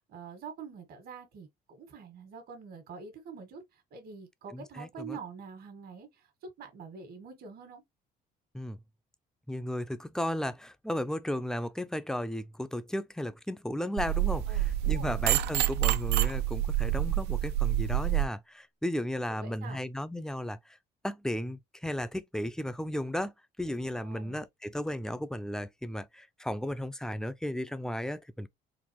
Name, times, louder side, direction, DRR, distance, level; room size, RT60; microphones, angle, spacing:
voice 1, 0.1-3.6 3.9-6.1 6.6-7.8 14.5-15.1 19.4-19.8 23.9-24.4, right 5 dB, 65° right, 1.6 m, -46 dB
voice 2, 4.5-5.2 8.5-8.8 9.5-20.6 21.0-23.3 23.6-28.5, left 1 dB, 5° left, 0.4 m, -34 dB
sound 1, 14.0-18.3, right 13 dB, 80° right, 0.5 m, -27 dB
4.0 x 2.5 x 2.9 m
cardioid pair, 110°, 17 cm